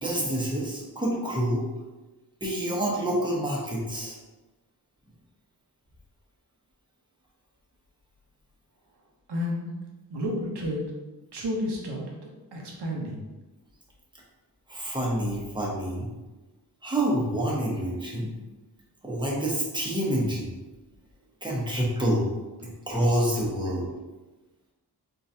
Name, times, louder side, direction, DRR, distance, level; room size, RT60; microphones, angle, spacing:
voice 1, 0.0-1.6 2.4-4.2 14.7-16.1 16.8-18.3 19.0-20.5 21.4-22.3 22.9-23.9, right 1 dB, 10° right, -4 dB, 1.1 m, -27 dB
voice 2, 9.3-9.7 10.1-10.8 11.3-13.3 22.6-22.7, left 1 dB, 75° right, -2 dB, 1.1 m, -31 dB
3.9 x 3.9 x 2.8 m, 1.1 s
wide cardioid pair, 115°, 41 cm